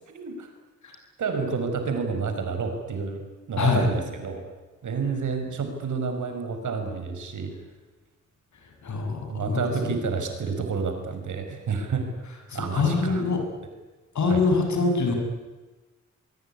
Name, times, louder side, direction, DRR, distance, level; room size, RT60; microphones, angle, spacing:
voice 1, 0.1-0.5 1.2-3.2 3.5-4.4 4.8-7.5 9.3-12.1 12.5-13.2 14.3-14.4, right 5 dB, 75° right, 6 dB, 5.7 m, -29 dB
voice 2, 3.6-3.9 8.8-9.6 12.5-13.4 14.1-15.1, left 4 dB, 70° left, 3 dB, 7.8 m, -24 dB
23.0 x 23.0 x 9.9 m, 1.2 s
cardioid pair, 65°, 30 cm